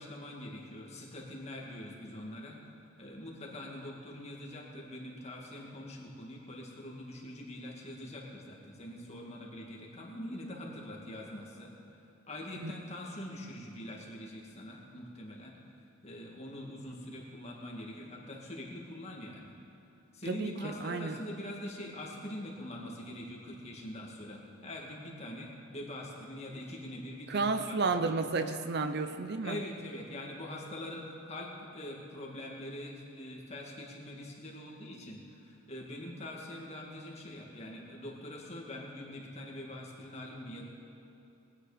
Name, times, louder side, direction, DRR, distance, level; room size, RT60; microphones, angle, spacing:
voice 1, 0.0-2.6 3.0-11.7 12.3-15.5 16.0-19.5 20.1-28.1 29.4-40.6, left 1 dB, 30° left, -2 dB, 2.1 m, -43 dB
voice 2, 20.3-21.1 27.3-29.6, right 4 dB, 50° right, 9 dB, 0.6 m, -32 dB
21.0 x 9.6 x 5.1 m, 2.8 s
head